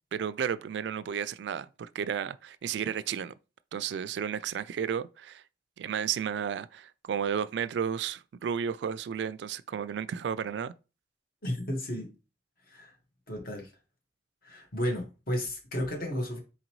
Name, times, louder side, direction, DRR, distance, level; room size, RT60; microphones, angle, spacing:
voice 1, 0.1-3.3 3.7-5.4 5.8-10.7, right 7 dB, 70° right, 0.3 m, -33 dB
voice 2, 11.4-12.1 12.7-12.9 13.3-13.7 14.4-16.4, equal, 55° left, 1.5 m, -33 dB
4.2 x 3.8 x 3.0 m
head